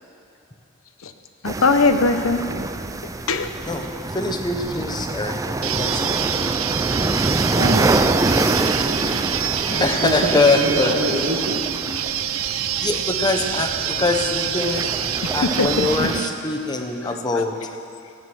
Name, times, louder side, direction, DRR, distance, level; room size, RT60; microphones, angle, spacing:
voice 1, 1.4-2.5 3.3-3.5 9.7-9.8 15.4-16.1 17.0-17.2, left 3 dB, 85° left, 8 dB, 0.8 m, -20 dB
sound 1, 1.5-16.2, right 2 dB, 15° right, 0.4 m, -26 dB
voice 2, 3.6-6.6 9.8-11.2 12.8-14.9 15.3-17.6, left 2 dB, 20° left, 4 dB, 1.0 m, -23 dB
sound 2, 5.6-16.3, right 10 dB, 85° right, 0.6 m, -26 dB
voice 3, 7.6-9.3 9.7-11.6, right 1 dB, 70° right, 2 dB, 1.5 m, -27 dB
15.5 x 9.6 x 6.2 m, 2.6 s
head